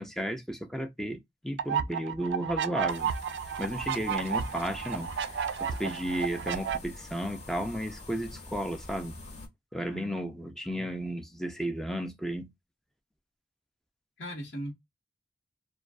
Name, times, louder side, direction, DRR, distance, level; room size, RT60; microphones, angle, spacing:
voice 1, 0.0-3.1 3.6-5.1 5.6-9.2 9.7-12.5, equal, ahead, 0.4 m, -33 dB
sound 1, 1.6-6.8, right 7 dB, 75° right, 0.3 m, -32 dB
sound 2, 2.9-9.5, left 2 dB, 40° left, 0.8 m, -46 dB
voice 2, 14.2-14.7, equal, 80° left, 1.0 m, -39 dB
2.4 x 2.2 x 2.2 m
head